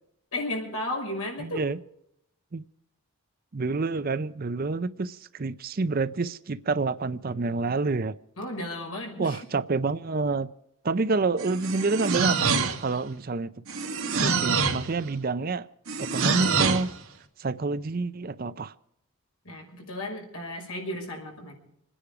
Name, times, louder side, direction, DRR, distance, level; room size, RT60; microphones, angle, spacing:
voice 1, 0.3-1.7 8.4-9.4 19.4-21.5, left 1 dB, 75° left, 5.8 m, -34 dB
voice 2, 1.4-1.8 2.5-2.6 3.5-8.1 9.2-10.5 10.8-13.5 14.2-15.7 16.0-16.9 17.4-18.7, right 3 dB, 40° right, 0.5 m, -28 dB
sound 1, 11.4-13.0 13.7-14.9 15.9-16.9, right 5 dB, 70° right, 1.9 m, -26 dB
27.5 x 10.0 x 4.9 m
head